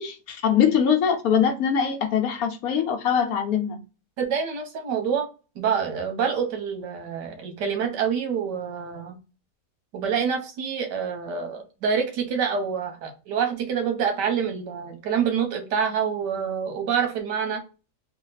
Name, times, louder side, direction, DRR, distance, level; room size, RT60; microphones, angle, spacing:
voice 1, 0.0-3.8, left 7 dB, 65° left, 1.1 m, -22 dB
voice 2, 4.2-5.3 5.6-9.2 9.9-17.6, right 7 dB, 85° right, 1.6 m, -26 dB
3.5 x 2.4 x 3.9 m
omnidirectional pair, 1.8 m